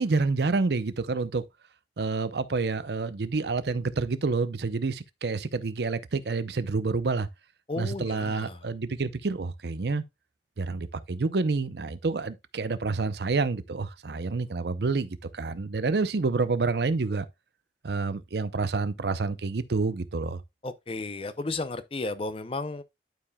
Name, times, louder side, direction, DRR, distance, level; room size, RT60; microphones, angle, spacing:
voice 1, 0.0-1.4 2.0-7.3 7.8-10.0 10.6-17.3 17.8-20.4, right 3 dB, 70° right, 0.6 m, -28 dB
voice 2, 7.7-8.6 20.6-22.8, left 2 dB, 30° left, 0.6 m, -33 dB
11.5 x 4.8 x 2.2 m
head